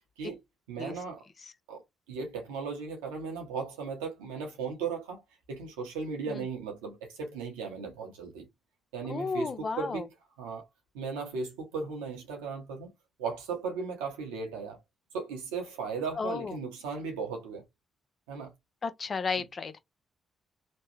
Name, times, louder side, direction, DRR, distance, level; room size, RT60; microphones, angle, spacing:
voice 1, 0.7-1.2 1.7-1.8 2.1-5.2 5.5-8.5 8.9-10.1 10.4-10.6 10.9-12.9 13.2-14.8 15.1-17.6 18.3-18.5, right 5 dB, 90° right, 1.0 m, -36 dB
voice 2, 9.0-10.1 16.2-16.6 18.8-19.8, left 4 dB, 45° left, 0.7 m, -33 dB
3.2 x 2.3 x 3.1 m
hypercardioid pair, 45°, 0 cm